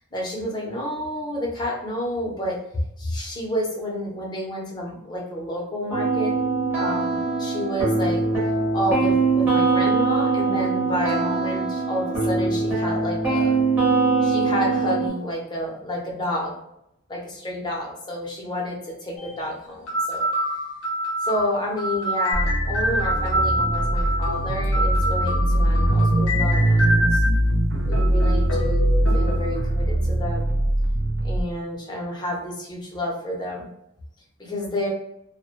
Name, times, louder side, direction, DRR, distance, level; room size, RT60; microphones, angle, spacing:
voice 1, 0.1-2.6 3.0-6.3 6.8-8.2 8.7-13.5 14.2-16.5 17.1-20.2 21.2-27.2 27.9-30.5 31.2-33.7 34.4-34.9, left 1 dB, 20° left, -2 dB, 0.6 m, -30 dB
sound 1, 5.9-15.1, right 4 dB, 10° right, 0.8 m, -22 dB
sound 2, 19.2-19.3 19.9-27.4 27.9-29.6, equal, 70° left, 0.5 m, -26 dB
sound 3, 22.3-31.4, right 1 dB, 55° right, 0.4 m, -21 dB
2.1 x 2.0 x 2.9 m, 0.79 s
head